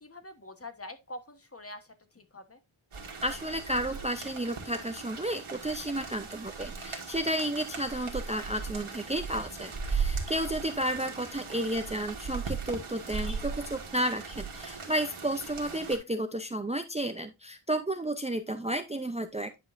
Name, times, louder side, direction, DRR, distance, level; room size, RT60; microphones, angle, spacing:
voice 1, 0.0-2.6 14.1-14.2, left 1 dB, 30° left, 1.2 m, -45 dB
sound 1, 2.9-16.0, right 5 dB, 75° right, 2.0 m, -38 dB
voice 2, 3.2-19.6, right 1 dB, 15° right, 0.7 m, -32 dB
9.6 x 5.3 x 2.6 m
wide cardioid pair, 75°, 49 cm